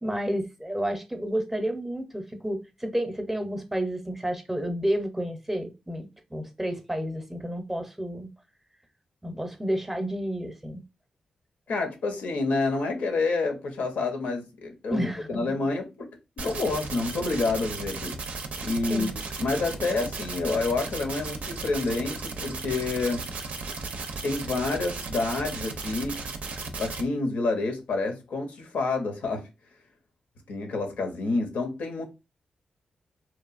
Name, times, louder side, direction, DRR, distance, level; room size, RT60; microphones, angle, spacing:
voice 1, 0.0-8.3 9.2-10.8 14.9-15.5 18.9-19.1, equal, 10° right, 0.6 m, -30 dB
voice 2, 11.7-16.1 16.4-18.2 18.6-19.1 19.4-23.2 24.2-26.2 26.8-29.4 30.5-32.0, left 3 dB, 80° left, 0.7 m, -28 dB
sound 1, 16.4-27.0, right 4 dB, 70° right, 0.5 m, -35 dB
2.8 x 2.2 x 2.5 m
cardioid pair, 70°, 3 cm